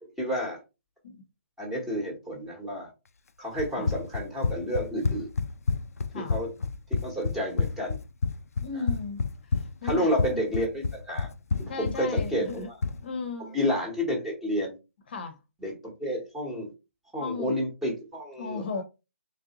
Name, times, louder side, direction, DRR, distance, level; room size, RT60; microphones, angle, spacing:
voice 1, 0.0-0.6 1.6-2.9 3.4-5.3 6.1-6.5 6.9-8.0 9.8-11.3 11.6-12.7 13.5-14.8 15.6-16.7 17.1-18.8, equal, 5° right, 1.0 m, -30 dB
Run, 3.6-13.0, left 4 dB, 90° left, 0.4 m, -29 dB
voice 2, 8.6-9.2 9.5-10.1 11.7-12.7 13.0-13.6 15.1-15.4 17.2-17.5 18.4-18.8, left 4 dB, 45° left, 0.8 m, -35 dB
3.7 x 3.3 x 2.9 m
hypercardioid pair, 165°, 8 cm